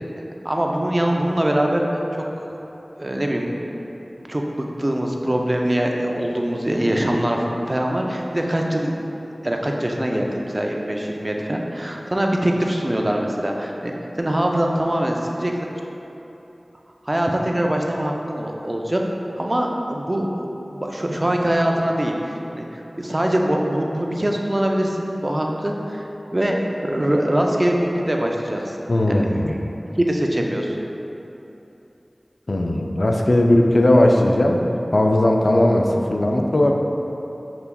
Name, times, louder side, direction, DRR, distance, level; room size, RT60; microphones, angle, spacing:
voice 1, 0.2-2.2 3.0-3.6 4.2-4.4 4.8-9.0 9.4-15.5 17.0-19.0 19.4-26.1 26.3-29.6 30.0-30.8, right 1 dB, 35° right, 1 dB, 0.4 m, -23 dB
voice 2, 28.9-29.6 32.5-34.7 34.9-36.7, left 1 dB, 60° left, 1 dB, 0.3 m, -18 dB
5.8 x 3.4 x 2.3 m, 3.0 s
wide cardioid pair, 40°, 0 cm